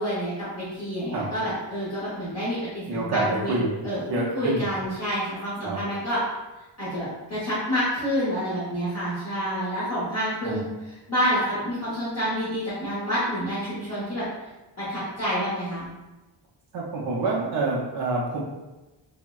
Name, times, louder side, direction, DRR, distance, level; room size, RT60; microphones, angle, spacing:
voice 1, 0.0-3.6 3.8-6.2 6.8-14.3 14.8-15.9, equal, 35° left, -10 dB, 0.7 m, -28 dB
voice 2, 2.9-3.8 4.1-4.7 5.6-5.8 10.4-10.6 16.7-18.4, right 3 dB, 50° right, -5 dB, 0.5 m, -27 dB
3.5 x 2.0 x 2.3 m, 1.1 s
wide cardioid pair, 165°, 47 cm